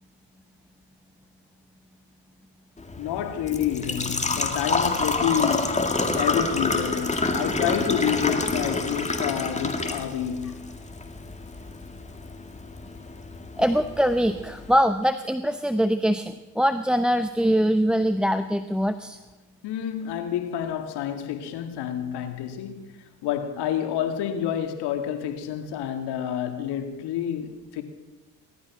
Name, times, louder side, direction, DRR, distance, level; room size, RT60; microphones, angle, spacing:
Engine / Trickle dribble / Fill (with liquid), 2.8-14.8, left 3 dB, 15° left, 2.1 m, -28 dB
voice 1, 3.0-10.7 13.6-13.7 19.6-27.8, left 9 dB, 70° left, 2.3 m, -29 dB
voice 2, 13.6-19.2, equal, ahead, 0.7 m, -23 dB
18.5 x 12.5 x 6.1 m
supercardioid pair, 80°, 42 cm